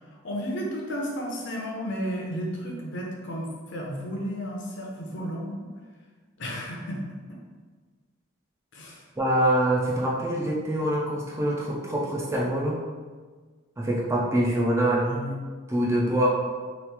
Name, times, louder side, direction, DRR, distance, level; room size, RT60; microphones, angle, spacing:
voice 1, 0.1-5.7 6.4-7.4 8.7-9.0 15.0-15.4, equal, 60° left, -1 dB, 0.6 m, -33 dB
voice 2, 9.2-12.8 13.8-15.1 15.7-16.3, right 1 dB, 15° right, -4 dB, 0.4 m, -24 dB
3.0 x 2.4 x 3.4 m, 1.5 s
head